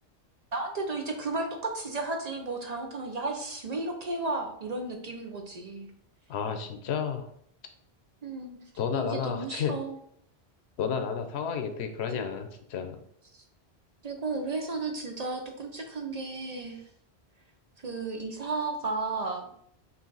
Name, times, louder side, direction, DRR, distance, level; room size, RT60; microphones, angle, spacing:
voice 1, 0.5-5.9 8.2-8.6 8.9-10.0 12.1-12.2 13.3-13.4 14.0-16.8 17.8-19.4, right 3 dB, 45° right, 3 dB, 0.6 m, -33 dB
voice 2, 6.3-7.3 8.8-9.7 10.8-13.0, left 7 dB, 85° left, 7 dB, 0.9 m, -31 dB
5.4 x 2.5 x 3.9 m, 0.69 s
omnidirectional pair, 1.1 m